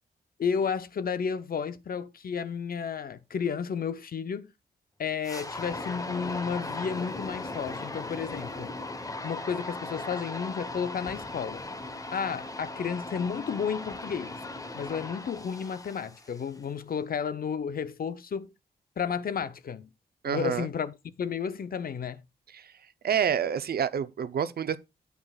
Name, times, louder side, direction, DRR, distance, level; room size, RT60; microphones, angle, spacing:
voice 1, 0.4-4.5 5.0-8.7 9.0-11.6 12.1-14.4 14.7-18.5 19.0-19.9 20.2-22.2, left 6 dB, 60° left, 0.7 m, -32 dB
sound 1, 5.2-16.6, left 2 dB, 20° left, 0.9 m, -38 dB
voice 2, 20.2-20.7 22.5-22.7 23.0-24.8, right 8 dB, 65° right, 0.6 m, -28 dB
9.5 x 8.4 x 2.3 m
cardioid pair, 85°, 17 cm